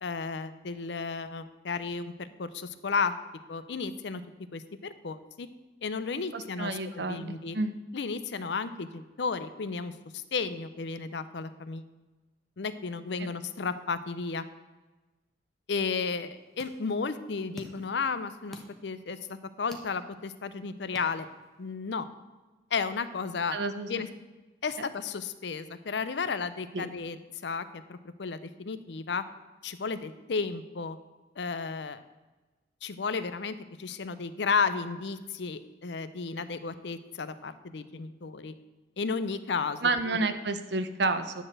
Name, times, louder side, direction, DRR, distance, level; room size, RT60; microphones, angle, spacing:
voice 1, 0.0-3.1 3.5-4.2 4.5-5.5 5.8-7.6 7.9-11.9 12.6-14.4 15.7-21.3 21.6-22.1 22.7-23.6 23.9-24.1 24.6-27.2 27.4-29.2 29.6-31.0 31.4-32.0 32.8-38.5 39.0-39.8 40.1-40.2, left 5 dB, 65° left, 13 dB, 0.5 m, -33 dB
voice 2, 6.3-7.7 13.2-13.3 23.5-24.0 26.7-26.9 39.8-41.4, right 3 dB, 65° right, 9 dB, 0.7 m, -30 dB
sound 1, 16.1-21.7, equal, ahead, 1.0 m, -51 dB
10.0 x 4.2 x 7.7 m, 1.2 s
head